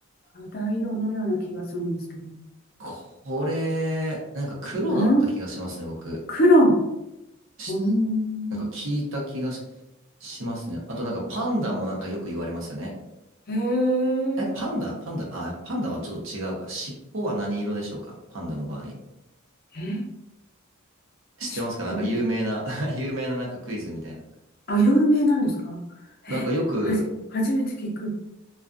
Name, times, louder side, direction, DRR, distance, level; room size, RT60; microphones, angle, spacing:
voice 1, 0.3-2.3 4.9-5.3 6.3-6.7 7.7-8.7 13.5-14.6 19.7-20.0 21.4-21.6 21.9-22.2 24.7-25.8 26.2-26.5 26.8-27.0 27.3-28.1, equal, 45° left, 0 dB, 0.5 m, -23 dB
voice 2, 2.8-6.2 7.6-7.7 8.5-9.6 10.2-12.9 14.4-19.0 21.4-24.2 26.3-27.1, equal, 65° right, -2 dB, 0.7 m, -30 dB
2.3 x 2.3 x 2.5 m, 0.92 s
head